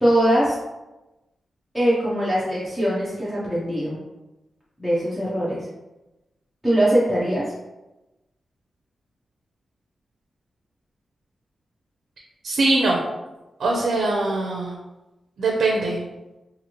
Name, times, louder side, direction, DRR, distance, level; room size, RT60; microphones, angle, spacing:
voice 1, 0.0-0.6 1.7-4.0 4.8-5.6 6.6-7.5, right 1 dB, 5° left, -9 dB, 0.5 m, -21 dB
voice 2, 12.4-13.0 13.6-14.8 15.4-16.1, right 2 dB, 70° right, -1 dB, 0.4 m, -22 dB
3.0 x 2.5 x 2.8 m, 1.0 s
wide cardioid pair, 170°, 0 cm